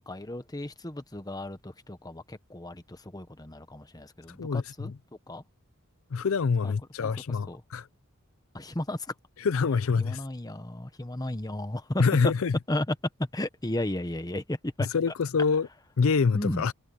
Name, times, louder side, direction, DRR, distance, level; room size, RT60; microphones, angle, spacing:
voice 1, 0.0-4.9 5.3-5.4 6.6-6.7 7.0-7.6 8.5-9.1 9.7-12.3 12.7-15.7 16.3-16.6, left 1 dB, 15° left, 1.1 m, -34 dB
voice 2, 4.4-5.0 6.1-7.9 9.4-10.2 12.0-12.6 14.8-15.7 16.0-16.7, left 5 dB, 65° left, 0.5 m, -26 dB
head